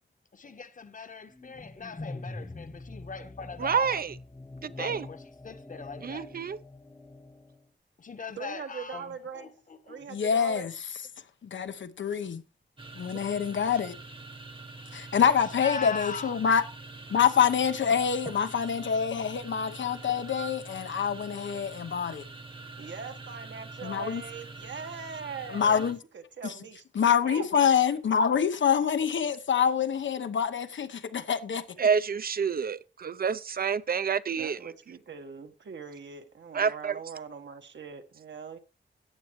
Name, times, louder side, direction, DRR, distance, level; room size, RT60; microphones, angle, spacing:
voice 1, 0.3-4.1 4.6-6.3 8.0-10.1 15.6-16.3, left 5 dB, 45° left, 1.1 m, -40 dB
sound 1, 1.3-7.6, left 2 dB, 15° left, 0.8 m, -44 dB
voice 2, 3.6-4.1 4.6-5.1 6.0-6.6 31.8-34.6 36.5-36.9, right 6 dB, 55° right, 0.5 m, -28 dB
voice 3, 8.4-9.5 9.9-10.7 22.8-25.9 26.1-26.8 27.2-27.4 34.3-38.6, right 5 dB, 75° right, 1.3 m, -41 dB
voice 4, 10.1-10.7 11.4-12.4 12.9-14.0 14.9-16.6 17.1-22.3 23.8-24.2 25.5-26.0 26.4-26.5 26.9-31.6, left 7 dB, 85° left, 0.9 m, -26 dB
sound 2, 12.8-26.0, right 3 dB, 25° right, 1.0 m, -45 dB
14.5 x 8.8 x 3.1 m
wide cardioid pair, 135°, 19 cm